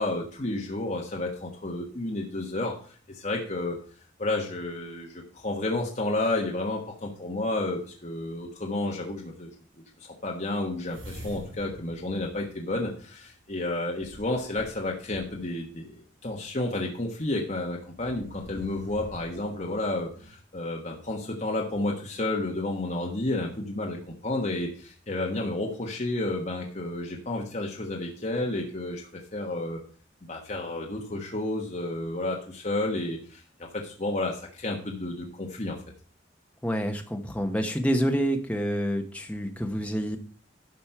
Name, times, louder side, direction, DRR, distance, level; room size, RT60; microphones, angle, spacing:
voice 1, 0.0-3.8 4.2-9.5 10.0-15.9 16.2-29.8 30.3-35.8, left 2 dB, 35° left, -1 dB, 1.3 m, -31 dB
sound 1, 10.8-13.3 14.0-15.6 16.3-16.4 17.8-20.3, equal, 80° right, 4.6 m, -45 dB
voice 2, 36.6-40.2, equal, 5° left, 4 dB, 1.0 m, -27 dB
12.0 x 5.2 x 5.9 m, 0.43 s
head